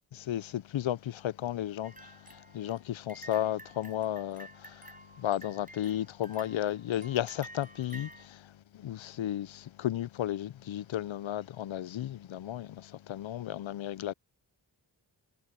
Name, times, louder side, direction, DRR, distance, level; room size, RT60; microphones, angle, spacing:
voice 1, 0.1-14.1, left 12 dB, 80° left, 0.5 m, -34 dB
sound 1, 1.8-8.3, right 1 dB, 20° right, 7.0 m, -51 dB
wide cardioid pair, 65°, 46 cm